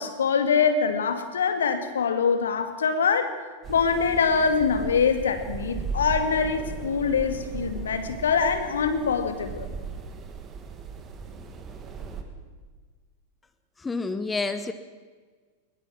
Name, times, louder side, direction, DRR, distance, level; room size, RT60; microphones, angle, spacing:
voice 1, 0.0-3.3 3.7-9.7, left 5 dB, 65° left, 9 dB, 2.2 m, -24 dB
sound 1, 3.6-12.2, right 5 dB, 25° right, 2.4 m, -37 dB
voice 2, 13.8-14.7, left 3 dB, 15° left, 10 dB, 1.1 m, -28 dB
21.5 x 21.5 x 6.2 m, 1.5 s
figure-of-eight pair, 90°, 0 cm